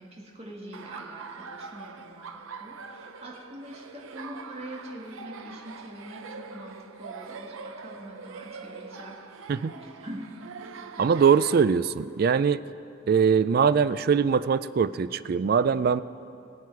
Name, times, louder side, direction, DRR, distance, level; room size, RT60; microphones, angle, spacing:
voice 1, 0.0-9.2 9.8-10.2 11.0-11.1, equal, 30° right, -2 dB, 1.8 m, -44 dB
Laughter, 0.7-11.6, right 5 dB, 85° right, 0.7 m, -43 dB
voice 2, 11.0-12.6 13.1-16.0, right 6 dB, 50° right, 15 dB, 0.3 m, -22 dB
23.5 x 7.8 x 4.7 m, 2.5 s
head